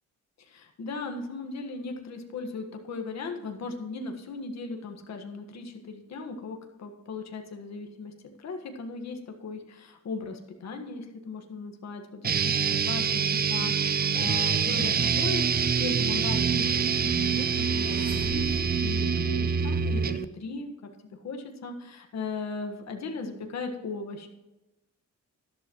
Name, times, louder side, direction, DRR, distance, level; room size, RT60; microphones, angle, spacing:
voice 1, 0.4-8.1 8.4-24.3, left 4 dB, 60° left, 4 dB, 1.6 m, -37 dB
sound 1, 12.2-20.3, right 6 dB, 30° right, 0.5 m, -25 dB
sound 2, 17.2-19.0, right 3 dB, 15° right, 2.2 m, -44 dB
13.0 x 11.5 x 3.1 m, 1.0 s
wide cardioid pair, 150°, 30 cm